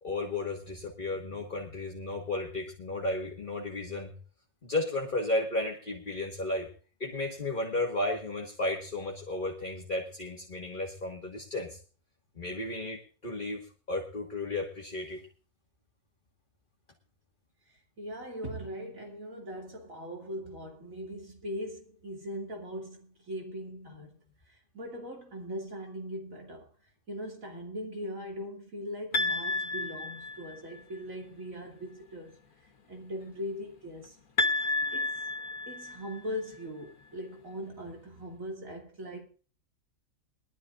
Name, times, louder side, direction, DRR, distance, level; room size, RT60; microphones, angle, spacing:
voice 1, 0.0-4.1 4.6-6.7 7.0-11.8 12.4-15.3, left 2 dB, 35° left, 1.9 m, -33 dB
voice 2, 17.7-24.2 24.5-26.7 27.1-34.2 34.9-35.1 35.7-39.2, equal, 70° right, 3.1 m, -40 dB
sound 1, 29.1-30.8 34.4-36.4, left 3 dB, 85° left, 1.7 m, -31 dB
22.5 x 12.5 x 2.5 m
omnidirectional pair, 1.5 m